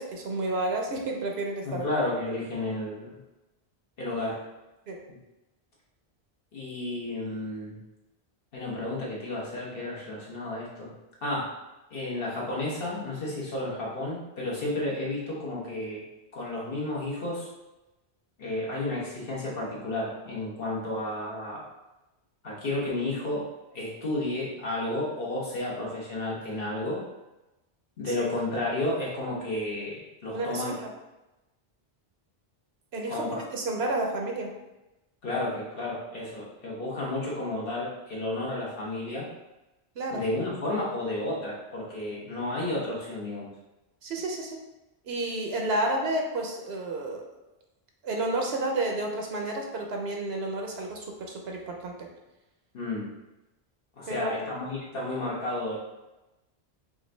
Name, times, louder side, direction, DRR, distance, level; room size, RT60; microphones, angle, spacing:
voice 1, 0.0-1.9 4.9-5.0 30.3-30.9 32.9-33.3 33.5-34.5 40.0-40.2 44.0-44.6 45.0-47.2 48.0-51.9 54.1-54.5, right 2 dB, 80° right, 1 dB, 1.0 m, -31 dB
voice 2, 1.6-3.2 4.0-4.4 6.5-7.8 8.5-10.9 11.2-11.5 11.9-16.0 16.3-17.5 18.4-21.6 22.4-23.4 23.7-27.0 28.0-30.7 33.1-33.4 35.2-39.3 40.1-43.5 52.7-53.1 54.0-55.8, left 2 dB, 60° left, -5 dB, 1.4 m, -32 dB
4.8 x 2.6 x 3.3 m, 1.0 s
omnidirectional pair, 1.1 m